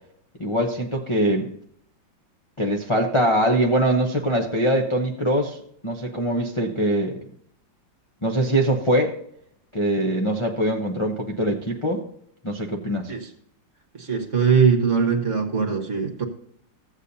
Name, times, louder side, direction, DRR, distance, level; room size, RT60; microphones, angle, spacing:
voice 1, 0.4-1.5 2.6-5.6 5.8-7.2 8.2-9.1 9.7-12.0 12.4-13.1, right 1 dB, 25° left, 0 dB, 0.7 m, -22 dB
voice 2, 13.9-16.2, right 6 dB, 45° right, 4 dB, 1.6 m, -21 dB
15.0 x 8.2 x 2.7 m, 0.68 s
omnidirectional pair, 2.0 m